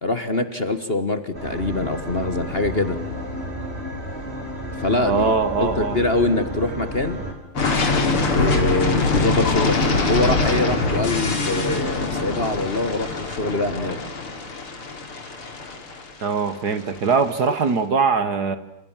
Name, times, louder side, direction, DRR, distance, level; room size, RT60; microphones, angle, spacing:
voice 1, 0.0-3.0 4.8-5.3 5.6-7.2 8.3-14.0 17.5-17.6, left 2 dB, 30° left, 10 dB, 1.5 m, -24 dB
sound 1, 1.3-7.3, equal, 25° right, 5.3 m, -31 dB
voice 2, 5.0-6.0 16.2-18.6, right 5 dB, 50° right, 13 dB, 1.7 m, -21 dB
sound 2, 7.6-17.4, left 3 dB, 75° left, 4.8 m, -23 dB
29.5 x 27.0 x 7.4 m, 0.86 s
omnidirectional pair, 2.4 m